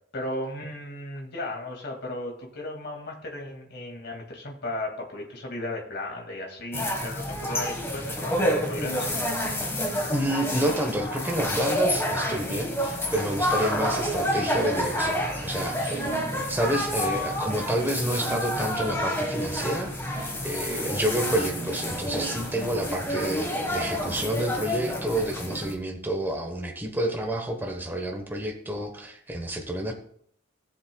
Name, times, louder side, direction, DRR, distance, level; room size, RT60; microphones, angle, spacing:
voice 1, 0.1-9.2, left 1 dB, 55° left, 0 dB, 2.2 m, -35 dB
sound 1, 6.7-25.7, equal, 10° left, 1.4 m, -29 dB
voice 2, 10.1-16.1 16.5-29.9, right 1 dB, 10° right, 3 dB, 1.0 m, -29 dB
17.5 x 7.4 x 2.3 m, 0.66 s
head